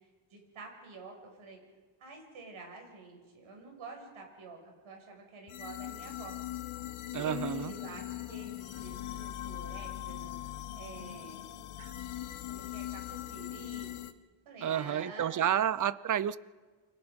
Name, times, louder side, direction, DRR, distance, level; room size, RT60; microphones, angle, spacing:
voice 1, 0.3-1.6 2.0-6.4 7.1-10.4 10.8-11.6 12.5-13.9 14.5-15.6, right 4 dB, 80° right, 7.0 m, -48 dB
sound 1, 5.5-14.1, left 13 dB, 90° left, 1.3 m, -41 dB
voice 2, 7.1-7.7 11.8-11.9 14.6-16.4, right 9 dB, 40° right, 0.7 m, -30 dB
29.5 x 25.0 x 5.4 m
cardioid pair, 145°, 48 cm